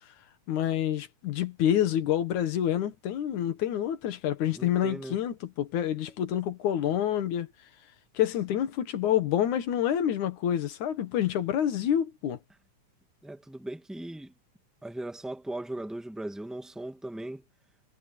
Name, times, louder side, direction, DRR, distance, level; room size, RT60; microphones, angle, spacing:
voice 1, 0.5-7.5 8.1-12.4, left 10 dB, 70° left, 2.8 m, -27 dB
voice 2, 4.5-5.2 13.2-14.3 14.8-17.4, right 1 dB, ahead, 1.1 m, -38 dB
omnidirectional pair, 3.7 m